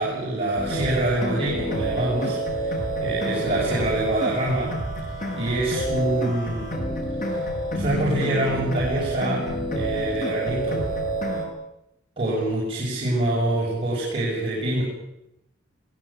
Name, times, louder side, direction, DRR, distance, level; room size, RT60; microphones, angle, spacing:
voice 1, 0.0-4.8 5.3-6.7 7.3-7.4 7.7-10.9 12.2-14.8, right 1 dB, 30° right, -6 dB, 7.3 m, -26 dB
sound 1, 0.6-11.5, right 1 dB, 45° left, 6.8 m, -28 dB
21.5 x 20.5 x 8.8 m, 0.85 s
head